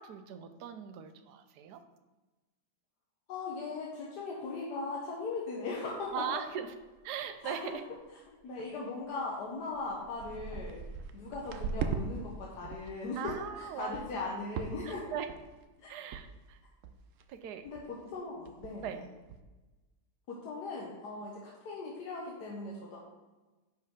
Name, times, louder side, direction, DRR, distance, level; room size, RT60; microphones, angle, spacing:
voice 1, 0.0-1.8 6.1-6.7 7.0-7.8 13.2-13.9 14.8-15.3 15.9-16.6 17.3-17.7 18.8-19.1, right 8 dB, 90° right, 9 dB, 1.2 m, -39 dB
voice 2, 3.3-6.2 7.4-7.8 8.3-10.8 11.1-15.0 15.8-15.9 17.6-19.0 20.3-23.0, left 3 dB, 80° left, -3 dB, 1.6 m, -39 dB
sound 1, 6.0-6.1 6.6-6.7 7.0-7.4 7.7-8.0 8.6-8.7 9.3-9.4 9.7-12.0 12.4-12.9 13.3-13.5 13.9-14.2 14.6-15.0 15.3-15.6 16.1-16.2 16.5-16.6 16.8-17.2 17.7-17.9 18.1-18.2 18.4-18.9 19.3-19.4, right 6 dB, 65° right, 0.8 m, -39 dB
10.0 x 4.6 x 3.7 m, 1.2 s
omnidirectional pair, 1.7 m